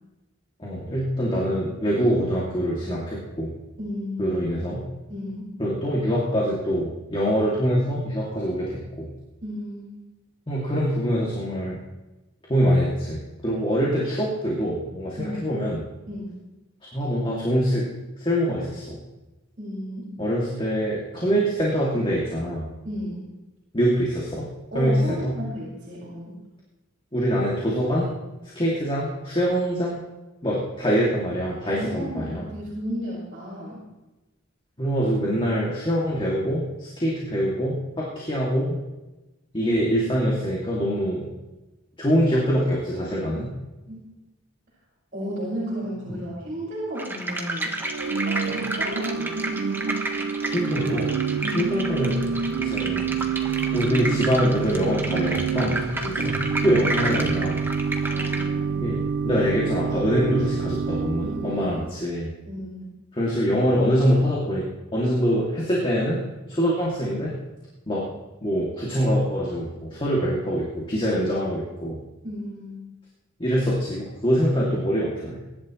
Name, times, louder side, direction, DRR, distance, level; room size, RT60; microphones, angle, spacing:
voice 1, 0.6-3.5 4.2-4.8 5.6-9.1 10.5-11.8 12.5-15.8 16.9-17.9 18.2-19.0 20.2-22.7 23.7-24.5 24.7-25.3 27.1-28.1 28.5-30.0 30.4-32.5 34.8-38.8 39.5-41.3 42.0-43.5 46.1-46.2 50.4-51.1 51.5-52.3 52.6-53.0 53.7-56.3 56.6-57.6 58.8-62.3 63.1-64.7 64.9-66.2 66.5-67.3 67.9-68.0 68.4-72.0 73.4-75.4, equal, 25° left, -5 dB, 2.7 m, -24 dB
voice 2, 3.8-4.4 5.1-5.5 9.4-10.0 15.2-15.5 16.1-16.3 19.6-20.1 21.1-21.4 22.8-23.2 24.7-26.4 31.7-33.8 43.9-44.0 45.1-47.7 48.2-49.5 51.4-51.7 58.0-58.8 61.2-61.8 62.5-62.9 72.2-72.8, equal, 45° right, -9 dB, 5.4 m, -33 dB
sound 1, 47.0-58.5, right 1 dB, 10° right, 1.4 m, -31 dB
Organ / Church bell, 47.8-62.0, right 6 dB, 60° right, 0.5 m, -28 dB
23.5 x 11.5 x 3.3 m, 1.1 s
head